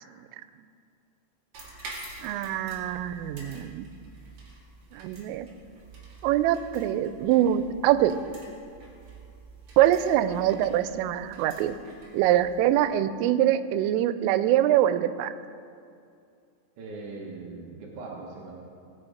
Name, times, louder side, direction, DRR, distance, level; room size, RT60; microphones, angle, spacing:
sound 1, 1.5-12.9, right 3 dB, 45° right, 2.8 m, -47 dB
voice 1, 2.2-3.9 4.9-5.5 6.2-8.2 9.8-11.8 12.1-15.3, right 12 dB, 90° right, 12 dB, 3.2 m, -24 dB
voice 2, 16.8-18.6, right 3 dB, 70° right, -3 dB, 1.9 m, -40 dB
18.5 x 8.9 x 4.9 m, 2.4 s
omnidirectional pair, 5.7 m